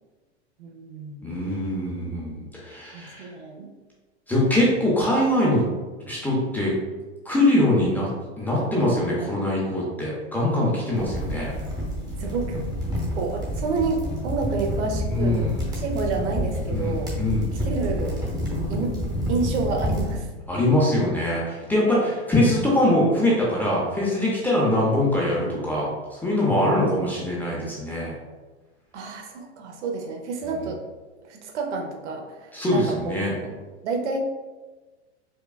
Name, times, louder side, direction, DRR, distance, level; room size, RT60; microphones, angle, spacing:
voice 1, 0.6-1.2 2.9-3.7 12.2-12.6 13.2-17.1 17.6-18.2 18.7-19.0 19.3-20.3 21.8-22.1 26.6-27.0 28.9-30.8 31.3-33.5 33.8-34.2, right 4 dB, 75° right, 2 dB, 0.8 m, -29 dB
voice 2, 1.2-3.3 4.3-5.6 6.1-6.7 7.3-8.1 8.4-11.6 15.1-15.6 16.7-17.4 20.5-28.1 32.5-33.3, left 1 dB, 5° left, -5 dB, 0.5 m, -23 dB
sound 1, 10.9-20.2, equal, 10° right, 0.8 m, -29 dB
4.7 x 2.3 x 2.3 m, 1.3 s
hypercardioid pair, 130°, 35 cm